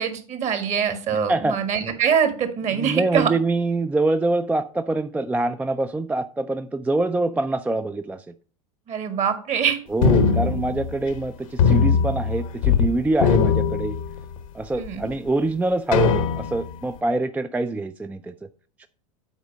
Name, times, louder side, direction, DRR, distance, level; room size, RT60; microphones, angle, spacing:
voice 1, 0.0-3.3 8.9-9.8 14.7-15.1, right 7 dB, 40° right, 9 dB, 1.5 m, -23 dB
voice 2, 1.1-1.6 2.7-8.3 9.9-14.0 14.5-18.3 18.8-18.9, right 2 dB, 10° right, 10 dB, 0.4 m, -25 dB
sound 1, 10.0-11.3 11.6-12.9 13.1-14.5 15.0-15.1 15.9-16.8, left 6 dB, 75° left, 1.0 m, -20 dB
8.1 x 4.3 x 5.2 m, 0.40 s
hypercardioid pair, 85°, 17 cm